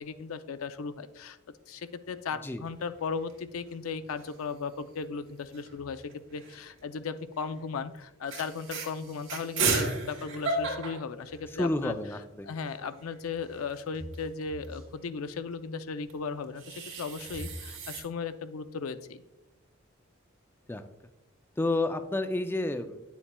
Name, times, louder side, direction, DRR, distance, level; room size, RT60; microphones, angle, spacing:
voice 1, 0.0-1.4 1.7-11.9 12.4-19.2, left 5 dB, 85° left, 11 dB, 0.4 m, -36 dB
sound 1, 2.6-3.3 3.7-3.8 4.0-4.6 5.5-6.7 7.3-7.6 8.0-8.1 8.3-11.9 12.3-12.4 12.6-14.9 16.1-18.0, right 3 dB, 60° right, 2.2 m, -35 dB
voice 2, 11.6-12.5 20.7-20.8 21.6-23.0, left 2 dB, 10° left, 8 dB, 0.3 m, -30 dB
9.8 x 7.1 x 2.2 m, 0.96 s
head